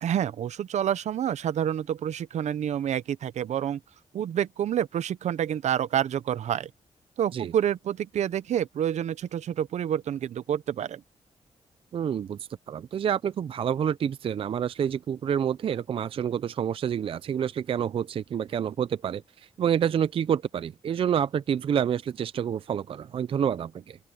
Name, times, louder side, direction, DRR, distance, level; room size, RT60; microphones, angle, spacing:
voice 1, 0.0-3.8 4.1-6.7 7.2-11.0, right 10 dB, 75° right, 0.7 m, -28 dB
voice 2, 11.9-24.0, right 8 dB, 50° right, 0.4 m, -28 dB
open air
wide cardioid pair, 140°, 12 cm